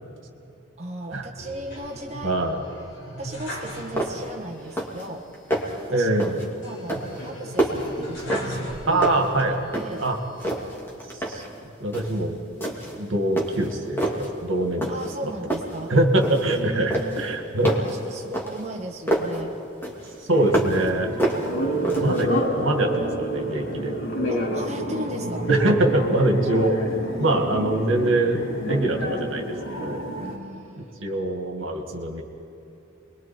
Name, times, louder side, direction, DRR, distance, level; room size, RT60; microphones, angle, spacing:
voice 1, 0.8-2.4 3.2-5.3 5.9-6.1 6.6-9.0 9.5-10.1 14.9-15.9 16.5-17.2 17.6-19.6 21.5-22.1 24.3-25.5 27.0-27.4 30.2-30.9, right 1 dB, 35° right, -1 dB, 1.6 m, -37 dB
sound 1, 1.4-4.4 4.7-4.8 6.6-9.4 9.9-10.7, equal, 60° left, 4.2 m, -37 dB
voice 2, 2.2-2.6 5.9-6.4 8.9-9.6 10.0-10.2 11.3-11.4 11.8-12.4 13.0-15.3 15.9-17.7 20.3-21.1 22.0-23.9 25.5-26.8 27.2-29.4 29.8-30.1 30.8-32.2, right 1 dB, 70° right, 4 dB, 2.2 m, -23 dB
sound 2, 3.5-3.6 4.0-4.4 4.6-5.1 5.3-5.8 6.2-6.5 6.9-8.7 9.0-10.1 10.4-11.5 11.9-12.2 12.6-13.0 13.4-14.3 14.8-15.2 15.5-16.6 16.9-19.4 19.8-20.9 21.2-22.3, right 1 dB, 10° left, 2.8 m, -27 dB
sound 3, 20.3-30.4, right 1 dB, 85° left, 4.4 m, -28 dB
30.0 x 22.0 x 4.5 m, 2.8 s
head